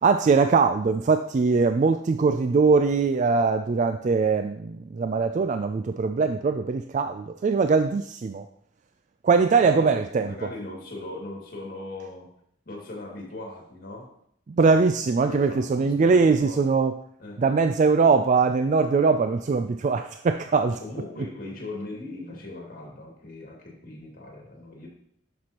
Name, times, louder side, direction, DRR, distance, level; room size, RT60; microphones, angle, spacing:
voice 1, 0.0-8.5 9.2-10.3 14.5-16.9 17.4-20.8, right 4 dB, 40° right, 8 dB, 0.3 m, -21 dB
voice 2, 9.6-12.3 12.7-14.2 15.3-16.7 17.2-17.5 20.8-24.9, left 2 dB, 50° left, -1 dB, 2.2 m, -39 dB
11.0 x 6.0 x 2.9 m, 0.68 s
head